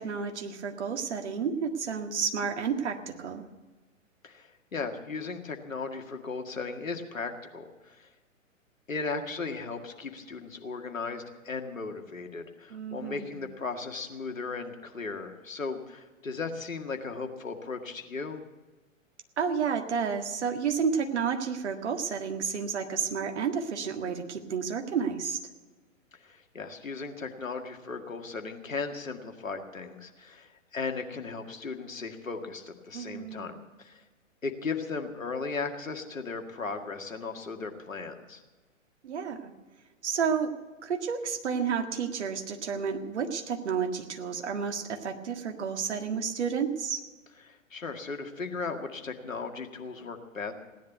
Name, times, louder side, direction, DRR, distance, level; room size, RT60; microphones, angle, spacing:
voice 1, 0.0-3.4 12.7-13.4 19.4-25.4 32.9-33.6 39.0-39.5 40.0-40.5 40.8-47.0, right 6 dB, 55° right, 6 dB, 1.8 m, -31 dB
voice 2, 4.2-8.1 8.9-18.4 26.1-34.0 34.4-38.4 47.4-50.5, left 4 dB, 75° left, 5 dB, 2.0 m, -36 dB
17.0 x 10.5 x 8.0 m, 1.3 s
figure-of-eight pair, 115°, 40 cm